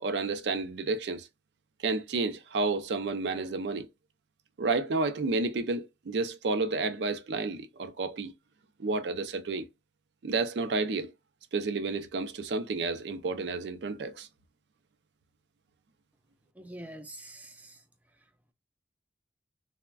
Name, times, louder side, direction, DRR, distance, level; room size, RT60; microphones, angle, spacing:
voice 1, 0.0-1.3 1.8-3.9 4.6-8.3 8.8-9.6 10.2-11.1 11.5-14.3, right 3 dB, 80° right, 0.4 m, -31 dB
voice 2, 16.6-17.7, right 1 dB, 10° right, 0.3 m, -45 dB
3.3 x 2.1 x 2.2 m
head